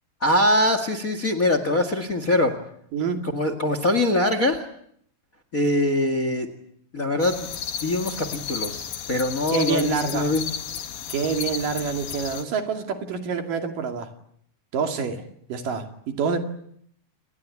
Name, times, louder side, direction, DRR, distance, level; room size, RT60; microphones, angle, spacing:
voice 1, 0.2-2.6 3.2-4.6 5.5-6.5 6.9-7.4 7.8-10.4, left 1 dB, 30° left, 10 dB, 1.7 m, -23 dB
voice 2, 2.9-3.3 9.5-10.3 11.1-14.1 14.7-15.2 15.5-15.9 16.2-16.4, right 6 dB, 70° right, 5 dB, 4.1 m, -26 dB
sound 1, 7.2-12.4, left 8 dB, 90° left, 3.5 m, -33 dB
28.5 x 21.0 x 8.5 m, 0.70 s
omnidirectional pair, 4.1 m